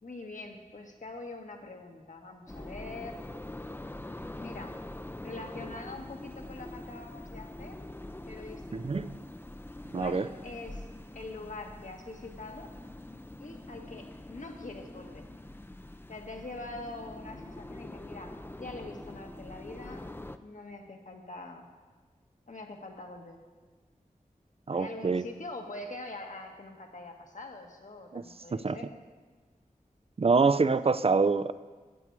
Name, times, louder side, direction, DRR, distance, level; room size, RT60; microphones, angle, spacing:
voice 1, 0.0-3.2 4.4-4.8 5.2-7.8 8.3-9.0 9.9-10.9 11.1-12.7 13.4-15.3 16.1-20.1 20.4-21.7 22.5-23.4 24.7-28.9, left 2 dB, 65° left, 3 dB, 1.4 m, -44 dB
sound 1, 2.5-20.4, left 1 dB, 15° left, 0.5 m, -44 dB
voice 2, 8.7-9.2 9.9-10.3 24.7-25.2 28.1-28.2 28.5-28.8 30.2-31.5, right 4 dB, 45° right, 15 dB, 0.5 m, -25 dB
13.0 x 8.2 x 4.7 m, 1.4 s
wide cardioid pair, 45°, 14 cm